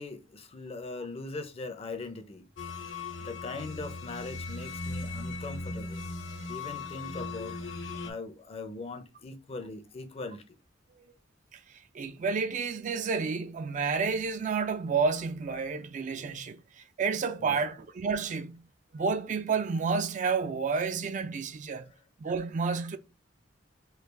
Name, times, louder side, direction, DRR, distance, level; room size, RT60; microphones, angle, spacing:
voice 1, 0.0-2.5 3.2-6.0 6.5-7.6 8.0-10.6 17.4-17.7, left 3 dB, 30° left, 0.5 m, -40 dB
sound 1, 2.6-8.1, left 3 dB, 75° left, 0.6 m, -38 dB
voice 2, 11.5-18.7 18.9-21.9 22.2-23.0, right 5 dB, 40° right, 0.3 m, -30 dB
3.2 x 2.3 x 3.3 m
head